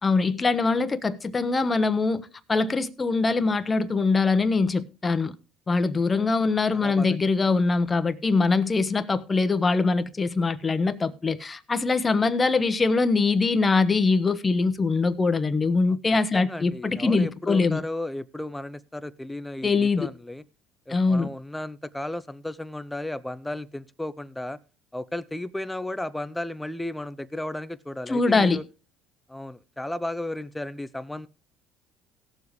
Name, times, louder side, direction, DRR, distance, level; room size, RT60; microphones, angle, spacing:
voice 1, 0.0-5.3 5.7-17.8 19.6-20.1 20.9-21.3 28.1-28.6, left 4 dB, 25° left, 1.0 m, -23 dB
voice 2, 6.7-7.2 16.3-20.4 20.9-24.6 24.9-28.6 29.3-31.3, left 1 dB, 5° left, 0.6 m, -34 dB
17.5 x 7.1 x 3.2 m
supercardioid pair, 95°, 0 cm